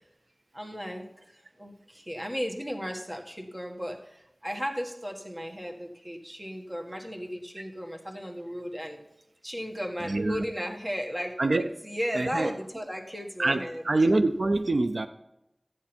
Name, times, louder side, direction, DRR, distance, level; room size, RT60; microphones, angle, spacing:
voice 1, 0.5-9.0 9.4-13.8, equal, 25° right, 2 dB, 1.6 m, -35 dB
voice 2, 10.0-10.4 11.4-11.7 12.1-12.5 13.4-15.1, right 2 dB, 85° right, 9 dB, 0.4 m, -25 dB
13.0 x 8.5 x 4.4 m, 0.88 s
wide cardioid pair, 40°, 0 cm